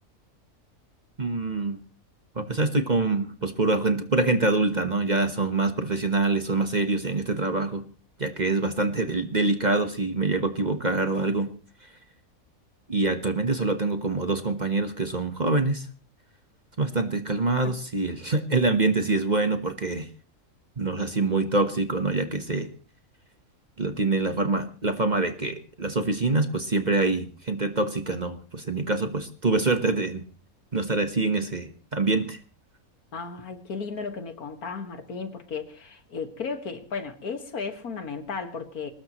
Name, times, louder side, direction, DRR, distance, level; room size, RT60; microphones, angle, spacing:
voice 1, 1.2-1.8 2.3-7.9 8.2-11.5 12.9-15.9 16.8-20.1 20.8-22.7 23.8-30.2 30.7-32.4, right 3 dB, 30° right, 8 dB, 1.2 m, -25 dB
voice 2, 33.1-38.9, left 5 dB, 75° left, 7 dB, 2.2 m, -34 dB
22.5 x 19.0 x 3.1 m, 0.37 s
omnidirectional pair, 1.6 m